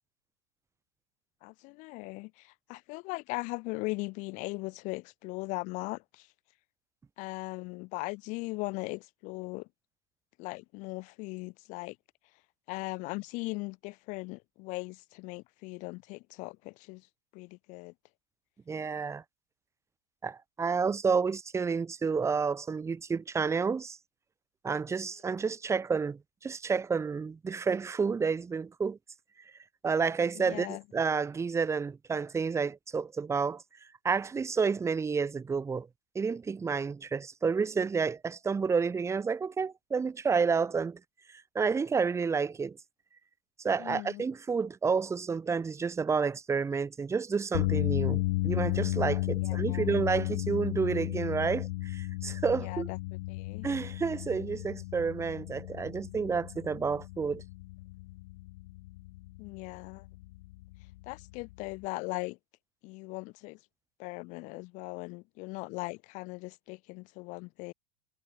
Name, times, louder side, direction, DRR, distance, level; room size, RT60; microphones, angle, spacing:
voice 1, 1.4-6.3 7.2-9.7 10.4-12.0 12.7-17.1 17.3-17.9 30.3-30.8 43.8-44.2 49.4-49.9 52.6-53.0 53.3-53.7 59.4-60.1 61.1-62.4 62.8-63.6 64.0-67.7, left 25 dB, 20° left, 0.5 m, -39 dB
voice 2, 18.7-19.2 20.2-24.0 24.6-29.0 29.8-33.6 34.0-35.9 36.1-41.0 41.3-42.8 43.6-52.9 53.6-57.4, right 5 dB, 10° right, 1.1 m, -30 dB
sound 1, 47.5-61.8, left 20 dB, 50° left, 0.8 m, -34 dB
supercardioid pair, 175°, 36 cm